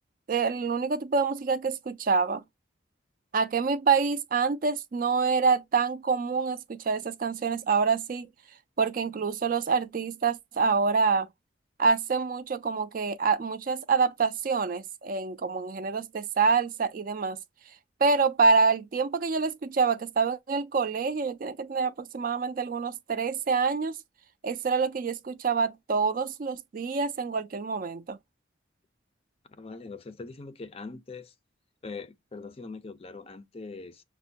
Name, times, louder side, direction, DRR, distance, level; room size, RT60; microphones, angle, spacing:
voice 1, 0.3-2.4 3.3-8.3 8.8-11.3 11.8-17.4 18.0-24.0 24.4-28.2, right 5 dB, 45° right, 0.4 m, -26 dB
voice 2, 29.5-31.3 31.8-34.0, left 3 dB, 30° left, 0.4 m, -42 dB
5.9 x 2.1 x 2.7 m
head